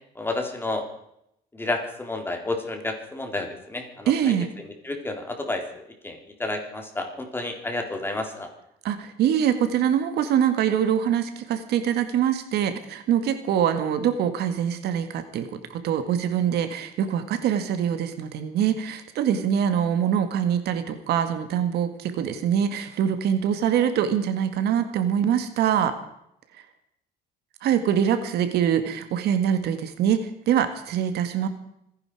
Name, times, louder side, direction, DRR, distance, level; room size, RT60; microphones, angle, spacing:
voice 1, 0.2-0.9 1.5-5.6 6.0-8.5, left 2 dB, 15° left, 3 dB, 3.8 m, -31 dB
voice 2, 4.1-4.5 8.8-25.9 27.6-31.5, right 9 dB, 75° right, 9 dB, 1.9 m, -24 dB
25.5 x 11.0 x 4.9 m, 0.77 s
cardioid pair, 110°, 17 cm